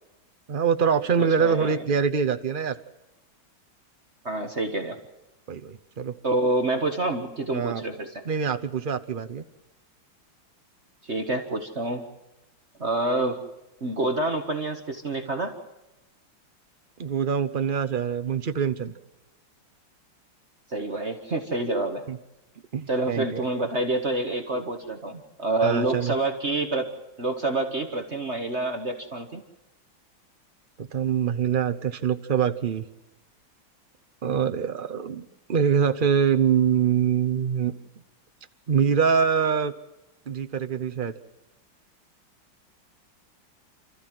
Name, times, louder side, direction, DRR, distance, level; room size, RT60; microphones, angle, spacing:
voice 1, 0.5-2.7 5.5-6.1 7.5-7.8 8.2-9.4 17.0-18.9 22.1-22.2 22.7-23.4 25.6-26.1 30.8-32.9 34.2-35.2 35.5-37.7 38.7-39.7 40.3-41.1, right 7 dB, 70° right, 8 dB, 0.5 m, -24 dB
voice 2, 1.2-1.8 4.2-5.0 6.2-8.2 11.0-12.0 12.8-13.4 13.8-15.5 20.7-22.0 22.9-26.9 27.2-29.4, right 2 dB, 35° right, 5 dB, 1.7 m, -27 dB
29.5 x 14.0 x 7.6 m, 0.99 s
omnidirectional pair, 2.2 m